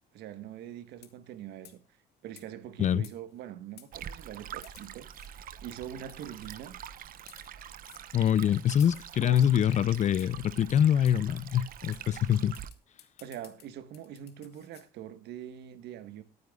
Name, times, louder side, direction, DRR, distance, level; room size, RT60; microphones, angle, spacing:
voice 1, 0.1-1.8 2.2-5.1 5.6-6.8 9.2-9.5 13.2-16.2, right 10 dB, 80° right, 1.5 m, -43 dB
sound 1, 0.9-1.3 1.6-1.9 2.4-2.5 3.0-3.4 3.8-3.9 4.6-5.3 6.1-6.5 7.2-7.5 7.8-8.1 8.8-9.6 10.2-10.4 11.1-11.2 11.5-11.6 11.9-12.0 12.5-14.9, left 11 dB, 75° left, 2.0 m, -55 dB
Stream, 3.9-12.7, right 9 dB, 55° right, 1.0 m, -45 dB
voice 2, 8.1-12.6, left 9 dB, 45° left, 0.6 m, -25 dB
22.5 x 9.5 x 2.4 m
cardioid pair, 110°, 17 cm